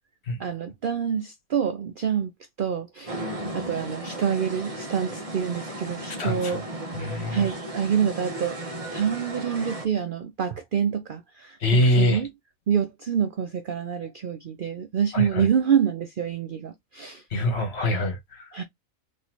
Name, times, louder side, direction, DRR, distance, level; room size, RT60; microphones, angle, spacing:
voice 1, 0.4-2.3 2.6-3.2 3.5-6.6 7.3-8.6 8.9-12.3 12.7-17.2 18.5-18.6, right 8 dB, 60° right, 0.5 m, -27 dB
sound 1, 3.1-9.9, right 1 dB, 25° right, 1.2 m, -35 dB
voice 2, 6.2-6.6 6.9-7.5 11.6-12.2 15.1-15.4 17.3-18.4, left 1 dB, 50° left, 1.6 m, -24 dB
4.0 x 3.2 x 2.8 m
omnidirectional pair, 1.4 m